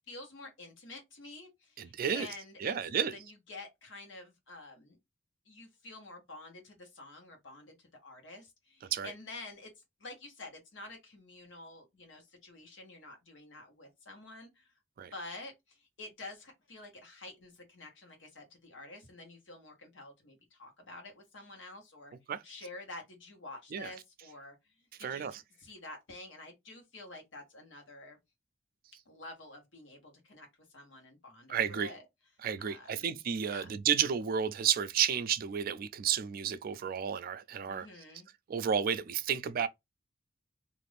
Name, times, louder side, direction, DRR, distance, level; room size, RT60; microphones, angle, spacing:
voice 1, 0.1-5.0 5.5-14.7 15.1-22.1 22.4-24.6 25.0-28.2 29.0-30.5 30.7-32.0 32.6-33.2 33.5-33.8 37.7-38.3, left 2 dB, 70° left, 1.1 m, -49 dB
voice 2, 1.8-2.3 2.6-3.1 8.9-9.1 15.0-15.1 22.3-22.4 23.7-23.9 25.0-25.4 31.5-31.9 32.4-37.9 38.5-39.7, right 8 dB, 50° right, 0.3 m, -32 dB
2.5 x 2.5 x 3.3 m
head